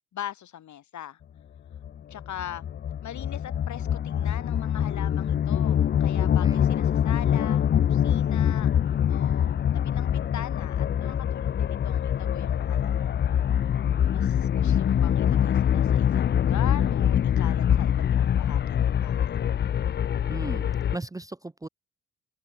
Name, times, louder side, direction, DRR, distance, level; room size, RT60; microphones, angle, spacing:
voice 1, 0.1-1.2 2.1-2.6 3.0-8.7 9.1-13.1 14.1-19.4, left 11 dB, 70° left, 4.8 m, -41 dB
sound 1, 1.7-21.0, left 9 dB, 35° left, 0.4 m, -24 dB
voice 2, 20.3-20.7 20.9-21.7, right 2 dB, 10° right, 0.6 m, -36 dB
open air
cardioid pair, 90°, 30 cm